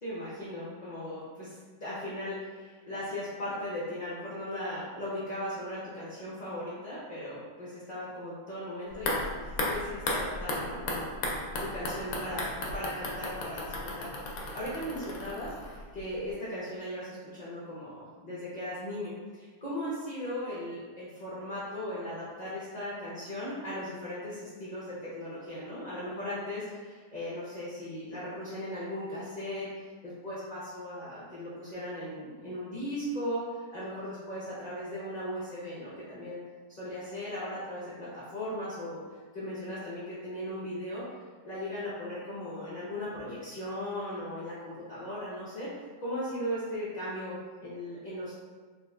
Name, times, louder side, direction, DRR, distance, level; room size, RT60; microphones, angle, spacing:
voice 1, 0.0-15.5 15.9-36.4 36.8-41.1 41.4-48.3, left 1 dB, 40° left, -8 dB, 0.6 m, -38 dB
sound 1, 8.9-16.0 16.3-16.4, left 2 dB, 70° left, 1.0 m, -35 dB
3.9 x 3.3 x 2.3 m, 1.4 s
omnidirectional pair, 1.7 m